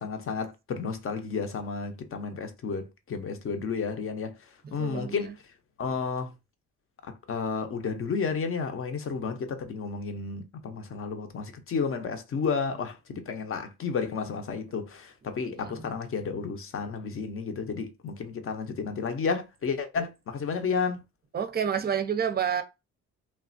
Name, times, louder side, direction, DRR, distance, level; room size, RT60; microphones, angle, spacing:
voice 1, 0.0-4.4 4.7-5.3 5.8-6.3 7.0-21.0, left 5 dB, 45° left, 0.7 m, -32 dB
voice 2, 4.6-5.3 15.4-15.9 21.3-22.6, right 8 dB, 30° right, 0.5 m, -30 dB
3.2 x 2.4 x 2.5 m
cardioid pair, 90°, 30 cm